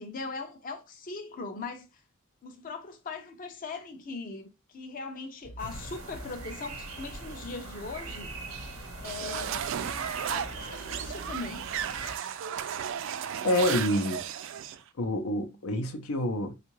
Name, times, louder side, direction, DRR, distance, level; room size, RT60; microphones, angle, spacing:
voice 1, 0.0-1.9 2.4-8.3 8.9-9.7 10.2-11.7, left 4 dB, 40° left, 0.5 m, -40 dB
sound 1, 5.4-11.4, right 1 dB, 55° left, 1.0 m, -49 dB
sound 2, 5.6-12.2, right 2 dB, 85° right, 0.9 m, -42 dB
sound 3, 9.0-14.8, right 9 dB, 60° right, 0.3 m, -34 dB
voice 2, 13.4-14.2 15.0-16.5, left 1 dB, 80° left, 0.6 m, -27 dB
3.6 x 2.4 x 3.0 m
head